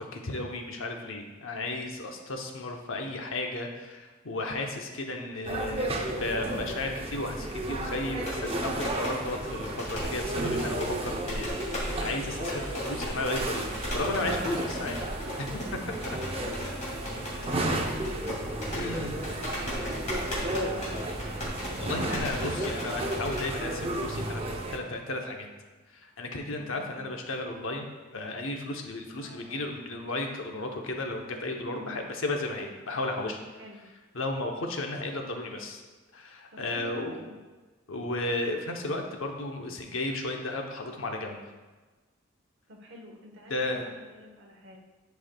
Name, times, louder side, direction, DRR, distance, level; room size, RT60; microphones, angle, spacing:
voice 1, 0.0-15.0 15.4-15.6 18.7-19.2 21.5-24.4 24.7-25.5 25.9-27.9 28.1-33.4 34.1-35.8 36.1-37.2 37.9-41.4 43.5-43.9, left 2 dB, 65° left, 2 dB, 0.8 m, -34 dB
sound 1, 5.4-24.8, right 1 dB, 30° right, 0.5 m, -33 dB
sound 2, 8.3-23.5, left 1 dB, 35° left, 1.9 m, -37 dB
voice 2, 15.7-18.5 18.9-20.9 26.5-27.2 29.1-29.7 31.7-32.1 33.6-33.9 36.5-37.4 42.7-44.8, left 1 dB, 60° right, 0 dB, 1.0 m, -49 dB
10.0 x 4.6 x 2.2 m, 1.3 s
head